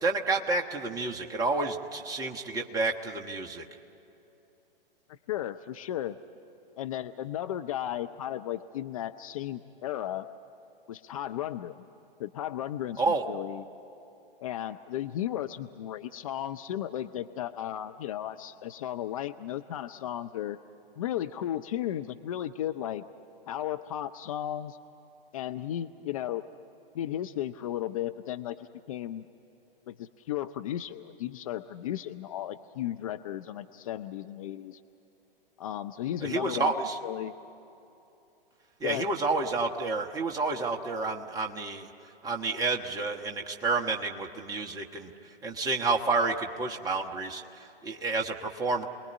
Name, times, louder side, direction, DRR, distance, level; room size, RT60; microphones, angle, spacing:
voice 1, 0.0-3.6 13.0-13.2 36.2-37.0 38.8-41.9 42.2-45.1 45.4-48.8, right 3 dB, 10° right, 1 dB, 1.3 m, -30 dB
voice 2, 5.3-6.2 6.8-10.3 10.9-11.9 12.2-13.6 14.4-20.6 21.0-23.0 23.5-24.8 25.3-26.4 26.9-29.2 29.9-34.8 35.6-36.7 37.0-37.3 38.8-39.1 43.9-44.0, left 11 dB, 35° left, 8 dB, 0.6 m, -35 dB
28.5 x 20.5 x 9.9 m, 2.9 s
figure-of-eight pair, 110°, 29 cm